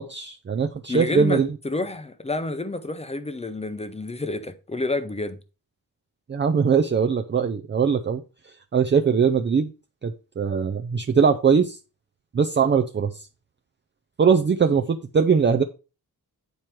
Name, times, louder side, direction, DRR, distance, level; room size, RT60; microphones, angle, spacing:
voice 1, 0.0-1.5 6.3-8.2 8.7-9.7 10.0-11.8 12.3-13.3 14.2-15.6, right 6 dB, 30° right, 0.4 m, -21 dB
voice 2, 0.9-5.4, left 2 dB, 15° left, 0.6 m, -29 dB
9.2 x 4.6 x 4.5 m
wide cardioid pair, 175°, 38 cm